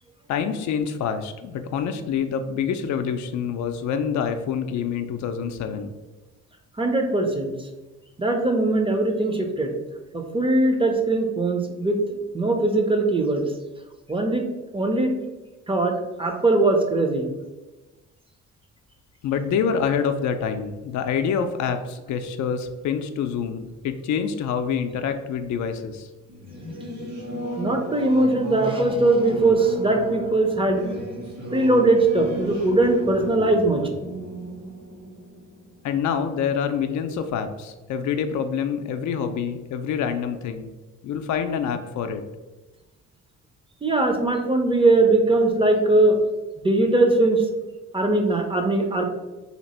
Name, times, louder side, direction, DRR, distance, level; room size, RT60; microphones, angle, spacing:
voice 1, 0.3-5.9 19.2-26.1 35.8-40.7 41.0-42.2, left 7 dB, 70° left, 7 dB, 0.4 m, -26 dB
voice 2, 6.8-7.5 8.2-9.7 10.1-12.0 12.3-13.4 14.1-14.4 14.7-15.1 15.7-17.3 27.6-30.9 31.5-33.9 43.8-46.2 46.6-47.4 47.9-49.0, right 2 dB, 20° right, 3 dB, 0.5 m, -20 dB
Singing / Musical instrument, 26.3-36.4, equal, 60° right, 1.4 m, -34 dB
2.8 x 2.5 x 4.2 m, 1.1 s
cardioid pair, 90°, 30 cm